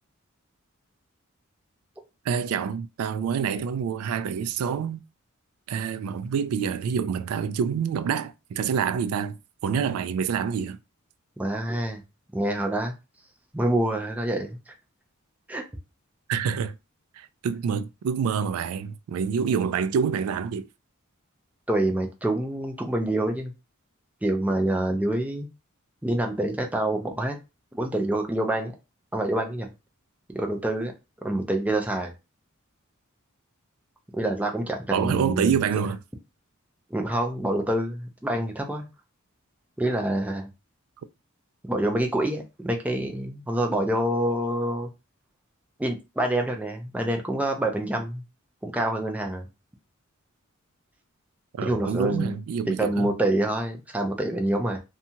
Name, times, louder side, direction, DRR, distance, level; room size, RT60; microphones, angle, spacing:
voice 1, 2.3-5.0 5.7-9.4 9.6-10.8 16.3-16.8 17.1-20.7 34.9-36.0 51.5-53.1, right 7 dB, 85° right, 0.3 m, -27 dB
voice 2, 11.4-12.0 12.3-12.9 13.5-14.7 15.5-15.6 21.7-23.5 24.2-25.5 26.0-27.4 27.7-28.7 29.1-29.7 30.3-30.9 31.2-32.1 34.1-35.5 36.9-38.9 39.8-40.5 41.7-44.9 45.8-48.2 48.6-49.5 51.6-52.3 52.7-54.8, right 1 dB, 5° right, 0.4 m, -26 dB
2.7 x 2.3 x 2.7 m
head